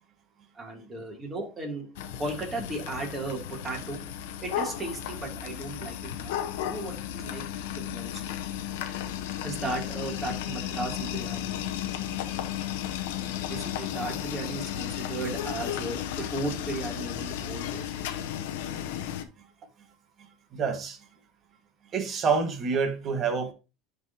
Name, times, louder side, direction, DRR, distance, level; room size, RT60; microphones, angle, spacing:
voice 1, 0.5-1.9 2.2-4.0 4.4-6.3 6.6-7.4 7.8-8.2 9.4-12.2 13.5-18.1, right 2 dB, 20° right, 2.8 m, -36 dB
sound 1, 2.0-19.2, left 10 dB, 85° left, 0.7 m, -34 dB
voice 2, 20.2-21.0 21.9-23.5, right 5 dB, 40° right, 1.4 m, -28 dB
11.0 x 4.1 x 2.9 m
supercardioid pair, 120°, 0 cm